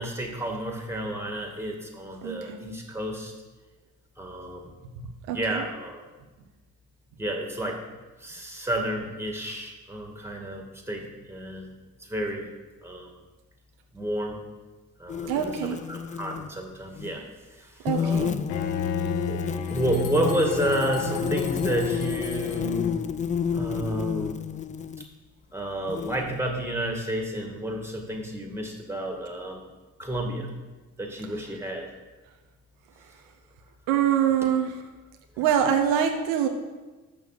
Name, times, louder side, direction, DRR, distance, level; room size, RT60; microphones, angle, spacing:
voice 1, 0.0-3.3 4.2-4.8 5.3-6.0 7.2-7.8 8.2-11.7 12.0-12.5 12.8-13.1 13.9-14.4 15.0-17.2 17.6-18.4 19.3-19.4 19.7-23.0 23.5-24.4 25.5-29.6 30.0-30.5 31.0-31.9, right 1 dB, 5° right, 2 dB, 2.1 m, -30 dB
voice 2, 2.2-2.6 5.0-5.7 15.3-15.8 17.8-18.4 33.9-34.8 35.4-36.5, right 8 dB, 85° right, 4 dB, 0.9 m, -25 dB
sound 1, 15.1-16.5 17.0-17.2 17.9-25.0 25.9-26.4, left 7 dB, 20° left, 0.3 m, -30 dB
Bowed string instrument, 18.5-23.3, left 6 dB, 80° left, 0.8 m, -33 dB
sound 2, 19.6-22.8, left 4 dB, 60° left, 1.7 m, -44 dB
6.8 x 6.1 x 6.7 m, 1.2 s
hypercardioid pair, 55°, 39 cm